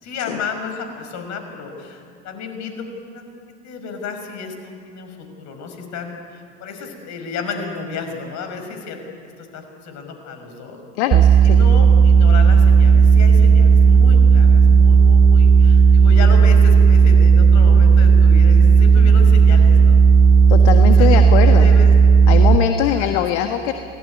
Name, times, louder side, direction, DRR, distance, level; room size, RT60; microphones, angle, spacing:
voice 1, 0.0-2.9 3.1-3.3 3.6-9.0 9.4-10.8 11.4-20.0 21.0-21.9 22.6-23.5, left 5 dB, 50° left, 5 dB, 5.8 m, -32 dB
voice 2, 11.0-11.6 20.5-21.7 22.3-23.7, left 10 dB, 65° left, 6 dB, 1.6 m, -21 dB
sound 1, 11.1-22.6, right 5 dB, 40° right, 1.2 m, -11 dB
27.0 x 19.0 x 9.8 m, 2.3 s
hypercardioid pair, 75°, 36 cm